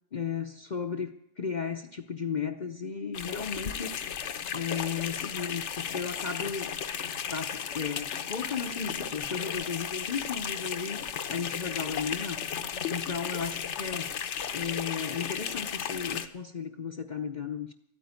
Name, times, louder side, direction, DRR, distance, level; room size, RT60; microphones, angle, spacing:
voice 1, 0.1-4.0 4.5-6.7 7.3-12.4 12.9-14.2 14.5-17.7, left 6 dB, 40° left, 6 dB, 0.7 m, -35 dB
sound 1, 3.1-16.3, left 8 dB, 65° left, 1.1 m, -35 dB
13.5 x 9.2 x 9.4 m, 0.75 s
omnidirectional pair, 1.3 m